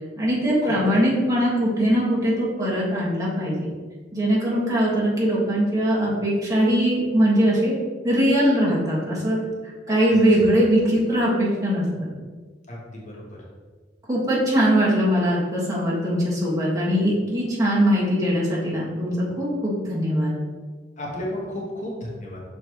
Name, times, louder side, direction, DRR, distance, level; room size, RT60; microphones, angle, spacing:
voice 1, 0.2-3.6 4.1-7.7 8.0-9.4 9.9-12.1 14.1-20.4, equal, 20° right, -7 dB, 1.8 m, -21 dB
voice 2, 12.7-13.2 21.0-22.4, left 1 dB, 40° left, -3 dB, 1.2 m, -33 dB
6.3 x 5.1 x 3.1 m, 1.4 s
head